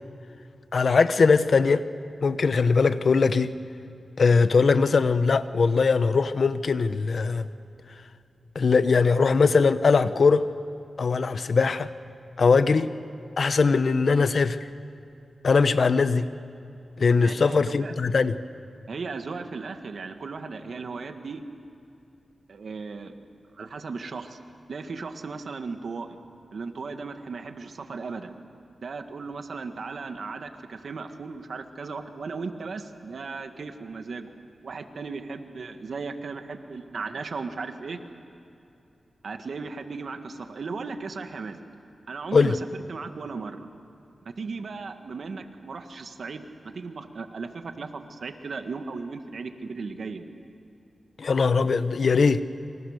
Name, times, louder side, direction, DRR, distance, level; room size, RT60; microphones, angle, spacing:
voice 1, 0.7-1.8 2.2-3.5 4.2-7.5 8.5-10.5 11.0-11.9 12.4-12.9 13.4-14.6 15.4-16.3 17.0-18.3 42.3-42.5 51.2-52.4, left 4 dB, 65° left, 13 dB, 0.9 m, -21 dB
voice 2, 17.2-17.9 18.9-21.4 22.5-23.1 23.5-24.4 24.7-26.2 26.5-28.3 28.8-34.3 34.6-38.0 39.2-41.6 42.1-43.7 44.2-50.3, right 4 dB, 70° right, 7 dB, 1.7 m, -36 dB
27.5 x 25.5 x 6.7 m, 2.8 s
wide cardioid pair, 80°, 0 cm